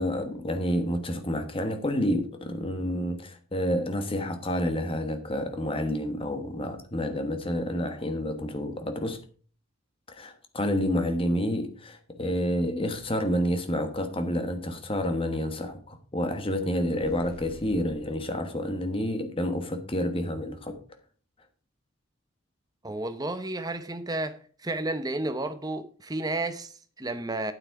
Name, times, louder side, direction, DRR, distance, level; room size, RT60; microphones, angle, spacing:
voice 1, 0.0-9.2 10.1-20.8, equal, 25° left, 1.3 m, -29 dB
sound 1, 17.0-18.2, left 2 dB, 45° left, 1.5 m, -48 dB
voice 2, 22.8-27.5, right 2 dB, 20° right, 0.8 m, -32 dB
9.1 x 8.5 x 4.7 m
head